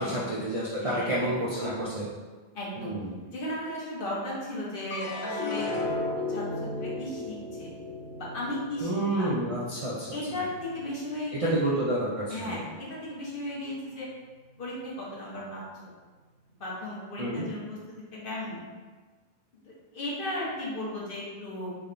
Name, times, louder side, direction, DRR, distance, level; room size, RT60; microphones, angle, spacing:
voice 1, 0.0-2.1 2.8-3.2 8.8-10.1 11.3-12.6 17.2-17.5, right 1 dB, 50° right, -6 dB, 0.4 m, -29 dB
voice 2, 0.8-1.1 2.5-2.9 3.2-5.7 6.3-6.4 6.8-7.7 8.2-8.9 9.2-9.3 10.1-11.5 12.3-12.6 12.9-14.1 14.6-15.6 16.6-18.6 19.9-21.7, left 1 dB, 60° left, -5 dB, 1.0 m, -35 dB
sound 1, 4.9-11.3 11.8-12.5, left 2 dB, 90° left, 0.9 m, -35 dB
3.4 x 2.2 x 3.7 m, 1.4 s
omnidirectional pair, 1.1 m